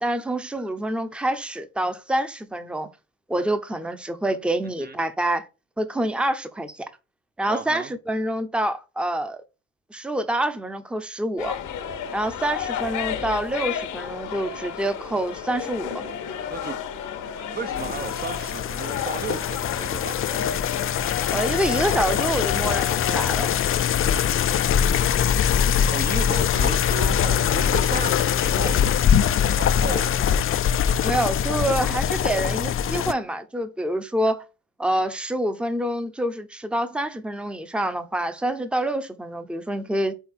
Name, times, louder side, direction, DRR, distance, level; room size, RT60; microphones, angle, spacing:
voice 1, 0.0-2.9 3.3-5.5 5.8-6.9 7.4-9.4 9.9-11.6 12.1-16.0 21.3-23.5 31.0-34.4 34.8-40.1, right 1 dB, 5° right, 0.8 m, -26 dB
voice 2, 7.5-7.9 16.5-16.8 17.5-20.6 25.9-28.9 29.2-30.4, right 4 dB, 30° right, 0.7 m, -34 dB
sound 1, 11.4-23.5, left 8 dB, 85° left, 1.2 m, -32 dB
sound 2, 17.8-33.1, left 9 dB, 45° left, 0.5 m, -23 dB
5.7 x 4.0 x 4.4 m
cardioid pair, 90°, 30 cm